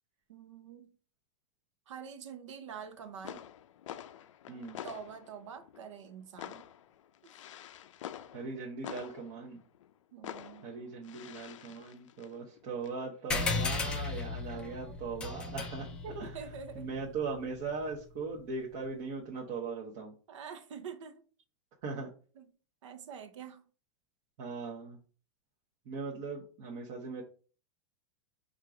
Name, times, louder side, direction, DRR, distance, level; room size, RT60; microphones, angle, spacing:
voice 1, 0.3-0.9 1.9-3.5 4.8-6.7 7.2-7.3 10.1-10.7 14.5-15.6 16.0-16.9 17.1-17.2 20.3-21.2 22.3-22.5 22.8-23.6, right 7 dB, 75° right, 0.8 m, -46 dB
sound 1, 2.9-3.0 3.2-9.9 10.2-12.9, left 11 dB, 85° left, 0.4 m, -48 dB
voice 2, 4.5-4.8 8.3-9.6 10.6-15.9 16.1-16.3 16.7-20.2 21.8-22.1 24.4-25.0 25.9-27.2, right 4 dB, 35° right, 0.8 m, -39 dB
sound 2, 13.3-18.2, left 4 dB, 5° left, 0.3 m, -36 dB
4.4 x 2.5 x 4.8 m
supercardioid pair, 170°, 16 cm